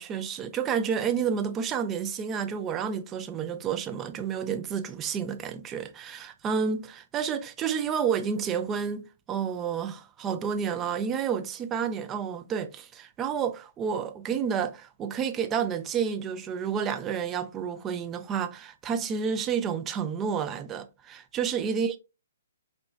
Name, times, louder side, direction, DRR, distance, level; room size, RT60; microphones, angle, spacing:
voice 1, 0.0-22.0, right 7 dB, 20° right, 0.4 m, -30 dB
4.7 x 2.6 x 2.3 m
hypercardioid pair, 135°, 0 cm